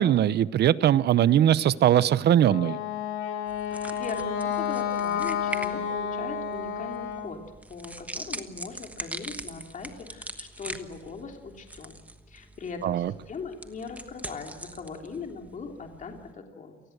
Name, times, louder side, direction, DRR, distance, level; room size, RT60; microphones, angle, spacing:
voice 1, 0.0-2.8 12.8-13.1, right 11 dB, 55° right, 18 dB, 0.7 m, -21 dB
Wind instrument woodwind instrument, 2.4-7.4, left 8 dB, 80° left, 3.6 m, -30 dB
sound 1, 3.5-16.3, right 1 dB, 5° right, 1.3 m, -42 dB
voice 2, 3.9-7.4 7.7-12.0 12.3-16.8, left 4 dB, 40° left, 3 dB, 3.3 m, -40 dB
28.5 x 19.5 x 8.0 m, 1.1 s
cardioid pair, 150°, 21 cm